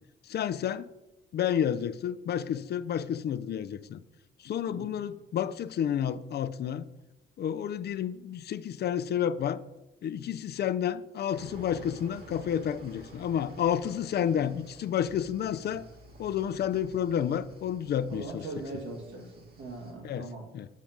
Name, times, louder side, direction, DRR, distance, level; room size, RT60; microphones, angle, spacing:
voice 1, 0.3-0.9 1.3-4.0 4.4-6.8 7.4-9.6 10.0-15.9 16.2-18.4 20.0-20.3 20.5-20.7, left 9 dB, 55° left, 0.5 m, -30 dB
voice 2, 4.6-5.0 14.2-14.5 18.1-20.5, right 2 dB, 80° right, 2.3 m, -41 dB
sound 1, 11.3-19.9, right 2 dB, 50° right, 2.0 m, -51 dB
7.4 x 5.2 x 5.9 m
cardioid pair, 90°, 20 cm